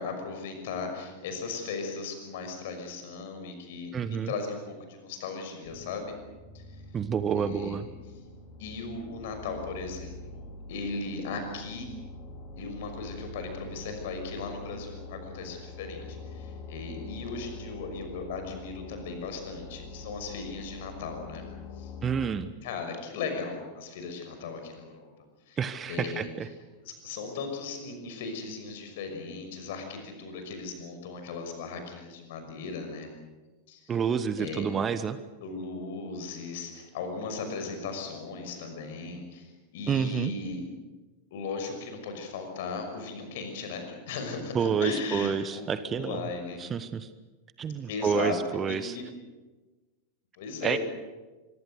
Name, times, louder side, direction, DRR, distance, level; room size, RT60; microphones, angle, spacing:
voice 1, 0.0-6.1 6.5-6.6 7.3-7.8 8.6-11.9 12.6-21.5 21.7-21.9 22.6-25.1 25.5-25.6 25.9-26.3 26.8-33.1 33.7-33.9 34.4-34.7 35.4-40.6 41.3-46.6 47.9-48.4 48.7-49.0 50.4-50.8, left 4 dB, 55° left, 6 dB, 5.9 m, -37 dB
voice 2, 3.9-4.3 6.9-7.9 22.0-22.5 25.6-26.5 33.9-35.2 39.9-40.3 44.5-46.3 46.6-47.1 47.6-49.0 50.6-50.8, right 7 dB, 25° right, 13 dB, 1.1 m, -29 dB
sound 1, 5.6-22.3, left 3 dB, 40° left, 3.6 m, -44 dB
25.5 x 23.5 x 6.9 m, 1.2 s
figure-of-eight pair, 90°, 0 cm